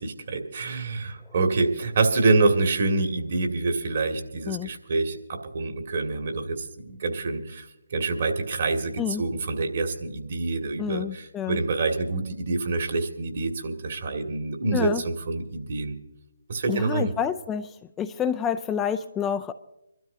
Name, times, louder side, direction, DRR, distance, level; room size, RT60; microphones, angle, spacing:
voice 1, 0.0-16.0 16.5-17.1, right 3 dB, 55° right, 3 dB, 2.2 m, -26 dB
voice 2, 10.8-11.6 14.7-15.0 16.7-17.7 18.0-19.5, left 8 dB, 15° left, 8 dB, 0.4 m, -28 dB
27.0 x 12.5 x 2.8 m, 0.86 s
figure-of-eight pair, 145°, 0 cm